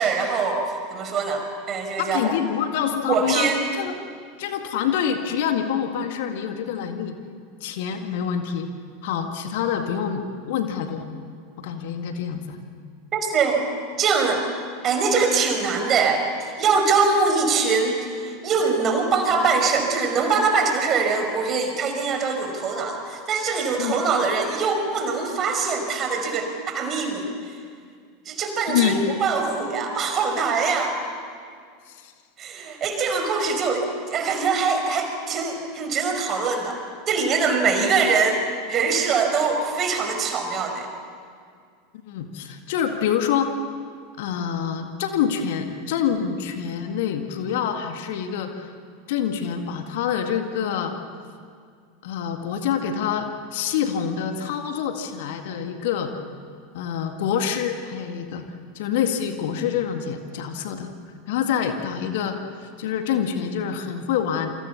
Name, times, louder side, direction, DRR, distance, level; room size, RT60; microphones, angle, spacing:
voice 1, 0.0-2.3 3.1-3.6 13.1-13.6 14.0-14.4 14.8-27.3 28.3-31.0 32.4-36.8 37.1-38.4 38.7-40.9, right 4 dB, 30° right, 4 dB, 5.3 m, -23 dB
voice 2, 2.0-3.9 4.4-7.2 7.6-8.7 9.0-11.1 11.6-12.6 23.8-24.0 28.7-29.0 31.9-32.1 37.8-37.9 42.1-43.5 44.2-48.7 49.1-50.9 52.0-56.1 56.7-58.4 58.8-60.9 61.3-62.4 62.8-64.5, left 8 dB, 55° left, 6 dB, 2.0 m, -26 dB
28.5 x 25.5 x 7.1 m, 2.1 s
figure-of-eight pair, 85°, 0 cm